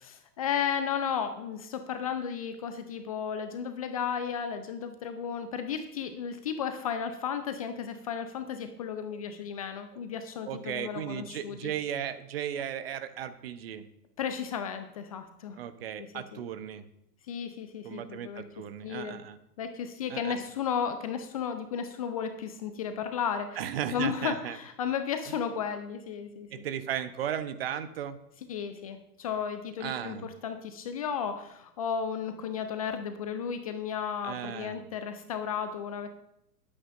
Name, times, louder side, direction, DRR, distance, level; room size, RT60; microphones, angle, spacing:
voice 1, 0.0-11.7 14.2-15.6 16.0-16.4 17.3-18.4 18.8-19.2 19.6-23.6 23.9-26.5 28.5-36.1, left 7 dB, 25° left, 8 dB, 0.5 m, -34 dB
voice 2, 10.5-13.8 15.6-16.8 17.8-19.4 20.1-20.4 23.6-24.6 25.3-25.4 26.5-28.2 29.8-30.3 34.2-34.8, right 9 dB, 40° right, 11 dB, 0.8 m, -36 dB
19.5 x 8.6 x 2.5 m, 0.80 s
figure-of-eight pair, 110°, 47 cm